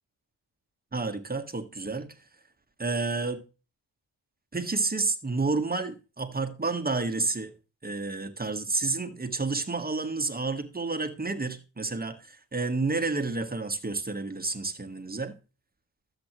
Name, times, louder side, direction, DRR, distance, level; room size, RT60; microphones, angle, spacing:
voice 1, 0.9-2.1 2.8-3.4 4.5-7.5 7.8-15.3, right 3 dB, 20° right, 1.7 m, -30 dB
12.5 x 8.0 x 3.0 m
cardioid pair, 90°, 42 cm